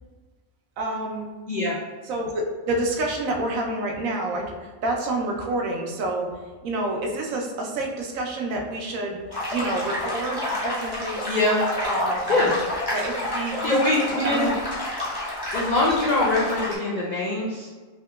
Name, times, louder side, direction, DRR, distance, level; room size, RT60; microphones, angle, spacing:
voice 1, 0.8-1.3 2.0-6.3 6.6-9.2 9.5-11.3 11.8-12.6 12.9-13.8 14.2-14.6, right 2 dB, 75° right, 1 dB, 1.0 m, -28 dB
sound 1, 9.3-16.8, left 1 dB, 25° left, 0.6 m, -29 dB
voice 2, 11.3-11.6 12.3-12.5 13.6-14.5 15.5-17.7, left 2 dB, 80° left, -5 dB, 0.4 m, -23 dB
3.6 x 2.8 x 2.2 m, 1.4 s
omnidirectional pair, 1.4 m